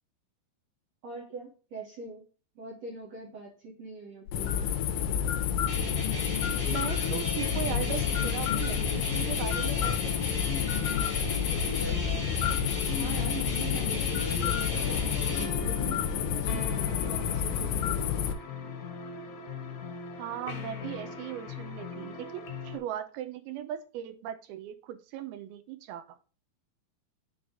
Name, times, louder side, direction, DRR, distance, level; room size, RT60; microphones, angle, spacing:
voice 1, 1.0-2.3 2.6-4.8 11.5-12.0 13.0-18.3, right 3 dB, 60° right, -4 dB, 1.9 m, -43 dB
sound 1, 4.3-18.3, left 8 dB, 90° left, 2.7 m, -29 dB
sound 2, 5.7-15.4, left 3 dB, 20° left, 1.4 m, -35 dB
voice 2, 6.6-10.4 20.2-26.2, right 11 dB, 80° right, 9 dB, 2.4 m, -38 dB
sound 3, 14.7-22.8, left 5 dB, 70° left, 2.9 m, -40 dB
6.9 x 3.9 x 4.8 m, 0.37 s
omnidirectional pair, 4.7 m